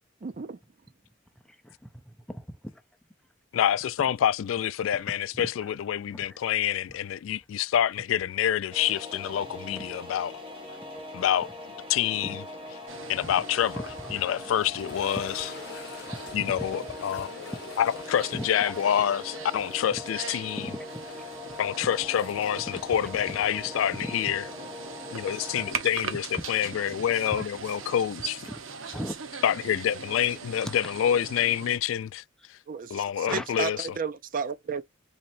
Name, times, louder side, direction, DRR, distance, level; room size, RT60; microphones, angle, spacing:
voice 1, 0.2-0.6 32.7-34.8, right 5 dB, 45° right, 0.5 m, -33 dB
voice 2, 1.4-2.8 5.0-5.7 6.1-6.4 9.8-9.9 12.2-12.4 13.4-13.5 13.7-14.5 15.7-16.8 17.7-17.8 18.3-18.5 20.6-21.0 21.5-21.9 22.6-22.8 23.1-23.6 23.9-24.1 24.4-24.6 25.6-25.7 28.5-28.6 28.9-29.1 30.6-30.9 33.3-33.6, equal, 5° left, 0.6 m, -40 dB
voice 3, 3.5-10.4 11.1-11.5 11.9-12.4 13.1-13.8 14.1-15.5 16.3-17.3 17.8-20.6 21.6-24.4 25.1-28.4 29.4-32.2 32.5-32.6 32.9-33.9, left 10 dB, 80° left, 0.3 m, -27 dB
sound 1, 8.7-25.7, left 2 dB, 30° right, 1.6 m, -41 dB
sound 2, 12.9-31.8, right 6 dB, 85° right, 0.9 m, -41 dB
sound 3, 14.8-23.7 23.9-24.0 24.7-24.8 27.3-27.4, left 5 dB, 55° left, 0.8 m, -47 dB
4.3 x 2.8 x 2.6 m
head